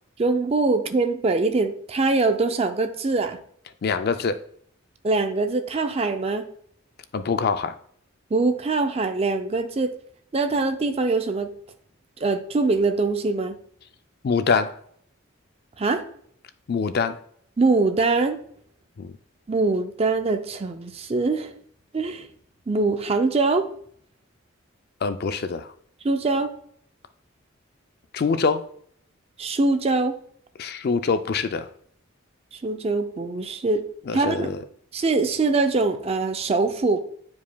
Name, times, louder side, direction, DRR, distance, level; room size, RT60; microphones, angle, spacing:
voice 1, 0.2-3.4 5.0-6.4 8.3-9.9 10.3-11.5 12.2-13.5 15.8-16.0 17.6-18.4 19.5-21.5 21.9-22.3 22.7-23.7 26.0-26.5 29.4-30.1 32.5-33.8 34.1-34.5 34.9-37.0, right 3 dB, 30° right, 8 dB, 0.4 m, -23 dB
voice 2, 3.8-4.4 7.1-7.7 14.2-14.8 16.7-17.2 19.0-19.1 25.0-25.7 28.1-28.6 30.6-31.7 34.1-34.6, left 5 dB, 50° left, 10 dB, 0.4 m, -24 dB
9.0 x 4.8 x 2.2 m, 0.63 s
head